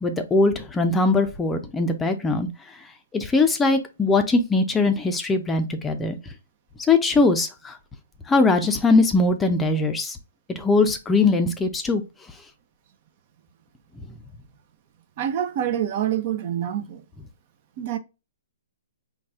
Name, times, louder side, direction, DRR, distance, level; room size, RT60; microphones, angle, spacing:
voice 1, 0.0-2.5 3.1-6.2 6.9-7.7 8.3-10.2 10.6-12.0, left 3 dB, 10° left, 0.5 m, -21 dB
voice 2, 15.2-17.0 17.8-18.0, right 10 dB, 45° right, 0.6 m, -26 dB
4.1 x 2.3 x 3.4 m
hypercardioid pair, 140°, 0 cm